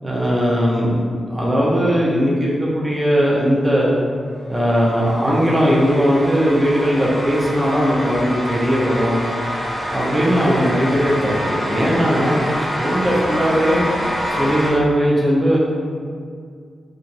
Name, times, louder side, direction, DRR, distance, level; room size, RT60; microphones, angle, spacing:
voice 1, 0.0-3.9 4.5-9.2 9.9-12.4 12.8-13.8 14.3-15.6, equal, 10° right, -6 dB, 0.8 m, -18 dB
sound 1, 4.6-14.7, equal, 15° left, 1.3 m, -26 dB
4.3 x 2.6 x 2.6 m, 2.2 s
wide cardioid pair, 100°, 0 cm